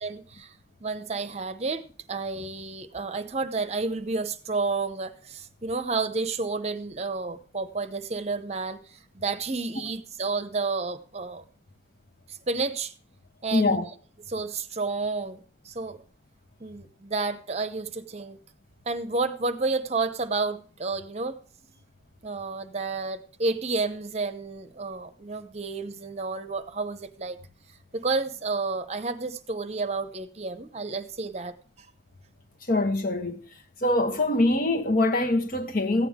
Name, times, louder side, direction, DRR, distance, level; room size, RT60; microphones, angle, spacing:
voice 1, 0.0-0.5 0.8-11.4 12.3-12.9 13.4-13.8 14.3-16.0 16.6-18.4 18.9-21.4 22.2-27.4 27.9-31.5, right 3 dB, 35° right, 0.8 m, -31 dB
voice 2, 13.5-13.9 32.7-33.4 33.8-36.1, left 2 dB, 45° left, 1.2 m, -23 dB
15.0 x 9.2 x 3.6 m
head